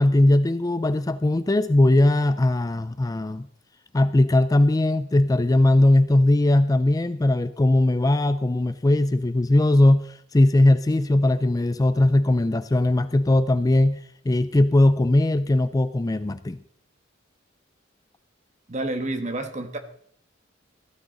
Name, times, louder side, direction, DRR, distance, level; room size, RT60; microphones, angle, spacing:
voice 1, 0.0-3.5 3.9-16.6, left 1 dB, 20° left, 13 dB, 0.4 m, -19 dB
voice 2, 18.7-19.8, right 2 dB, 35° right, 7 dB, 1.5 m, -29 dB
15.0 x 12.5 x 3.9 m, 0.65 s
head